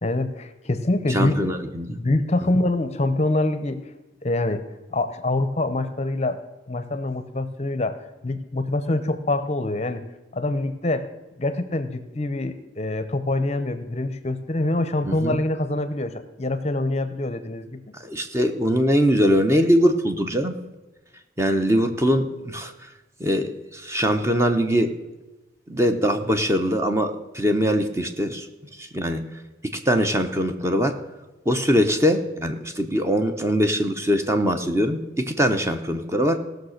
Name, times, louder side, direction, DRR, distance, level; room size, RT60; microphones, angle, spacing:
voice 1, 0.0-1.4 1.9-3.8 4.2-4.6 4.9-6.4 6.7-8.0 8.2-10.1 10.3-11.1 11.4-17.9, left 2 dB, 35° left, 11 dB, 0.7 m, -25 dB
voice 2, 1.1-2.0 15.1-15.4 18.0-20.6 21.4-22.7 23.2-24.9 25.7-28.5 28.8-29.2 29.7-31.0 31.5-36.4, equal, 15° right, 6 dB, 0.8 m, -22 dB
17.0 x 6.6 x 6.5 m, 1.1 s
head